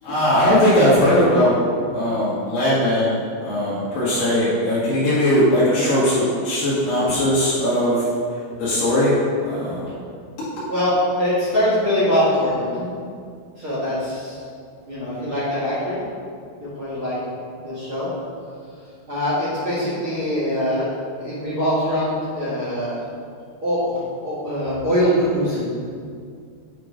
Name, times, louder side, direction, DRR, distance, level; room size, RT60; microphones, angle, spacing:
voice 1, 0.0-1.6 1.9-9.9, left 1 dB, 65° left, -11 dB, 3.2 m, -19 dB
voice 2, 10.7-12.9 13.6-14.4 14.9-16.0 16.6-17.2 17.5-18.1 19.1-20.9 21.2-23.0 23.6-25.7, equal, 45° right, -10 dB, 1.8 m, -23 dB
8.6 x 2.9 x 5.0 m, 2.3 s
omnidirectional pair, 4.7 m